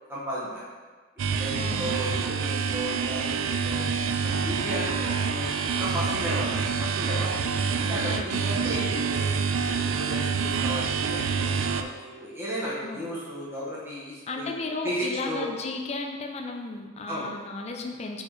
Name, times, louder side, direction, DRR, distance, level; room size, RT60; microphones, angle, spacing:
voice 1, 0.1-0.7 1.4-3.8 4.2-7.4 7.8-9.3 9.8-14.5 14.8-15.5 17.1-17.3, equal, 10° right, -8 dB, 1.3 m, -34 dB
sound 1, 1.2-11.8, right 5 dB, 85° right, 0.4 m, -27 dB
voice 2, 1.5-2.0 2.9-3.0 8.0-8.5 12.8-13.0 14.3-18.2, left 3 dB, 35° left, 3 dB, 0.5 m, -34 dB
4.6 x 4.5 x 4.8 m, 1.5 s
head